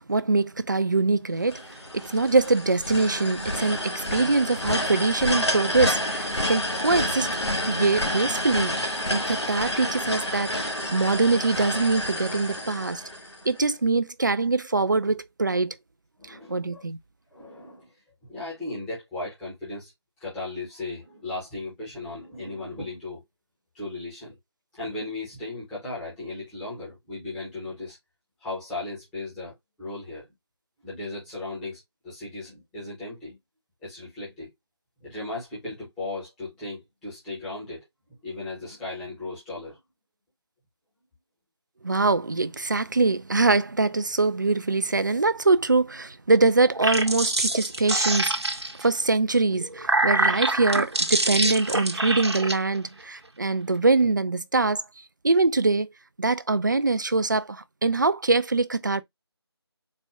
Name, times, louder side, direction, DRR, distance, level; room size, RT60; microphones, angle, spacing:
voice 1, 0.0-1.6 1.9-7.4 7.7-13.0 13.5-15.8 16.3-17.0 41.8-48.3 48.8-54.8 55.2-55.9 56.2-59.0, right 3 dB, 45° right, 0.4 m, -23 dB
sound 1, 1.5-13.6, left 1 dB, 85° left, 1.3 m, -29 dB
voice 2, 16.2-16.8 17.3-17.9 18.2-19.9 20.2-23.2 23.7-24.4 24.8-28.0 28.4-29.5 29.8-30.3 30.8-33.4 33.8-34.5 35.0-37.9 38.2-39.8, left 2 dB, ahead, 0.7 m, -36 dB
sound 2, 46.6-48.9 49.5-52.5, right 2 dB, 75° right, 1.0 m, -25 dB
4.2 x 2.2 x 3.5 m
figure-of-eight pair, 165°, 14 cm